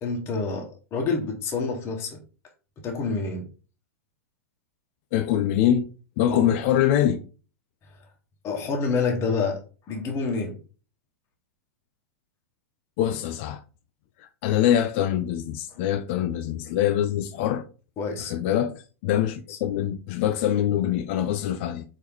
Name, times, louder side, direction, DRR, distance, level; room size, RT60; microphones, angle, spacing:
voice 1, 0.0-2.2 2.8-3.4 6.3-6.5 8.4-9.6 9.9-10.6 18.0-18.3 19.5-19.6, left 4 dB, 30° left, 1.2 m, -27 dB
voice 2, 5.1-5.9 6.2-7.2 13.0-13.6 14.4-17.6 18.2-21.8, left 11 dB, 50° left, 0.4 m, -24 dB
4.5 x 2.9 x 3.6 m
hypercardioid pair, 100°, 8 cm